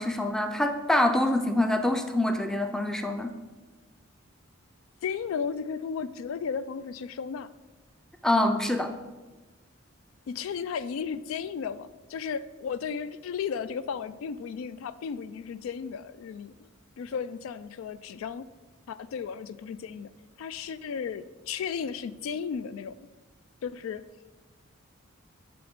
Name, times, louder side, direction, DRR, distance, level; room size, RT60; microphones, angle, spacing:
voice 1, 0.0-3.3 8.2-8.9, left 1 dB, 5° left, 6 dB, 0.4 m, -25 dB
voice 2, 5.0-7.5 10.3-16.5 17.0-18.5 18.9-20.1 20.4-23.1 23.6-24.0, left 6 dB, 75° left, 14 dB, 0.3 m, -34 dB
8.9 x 3.4 x 5.2 m, 1.2 s
head